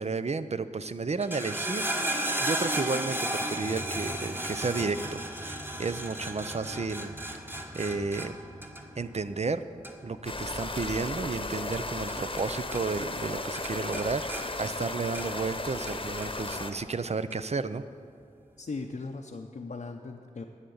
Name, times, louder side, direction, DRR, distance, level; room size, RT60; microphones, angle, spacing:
voice 1, 0.0-7.1 7.7-8.3 9.0-9.6 10.0-17.8, right 4 dB, 50° right, 12 dB, 0.6 m, -32 dB
sound 1, 1.1-12.5 12.7-13.3 13.5-15.5 15.9-16.6 17.3-17.4, right 1 dB, 15° right, 1.2 m, -35 dB
sound 2, 10.2-16.7, left 2 dB, 35° left, 1.0 m, -35 dB
voice 2, 18.6-20.5, left 3 dB, 65° left, 0 dB, 0.7 m, -38 dB
11.5 x 8.1 x 8.6 m, 2.4 s
wide cardioid pair, 60°, 14 cm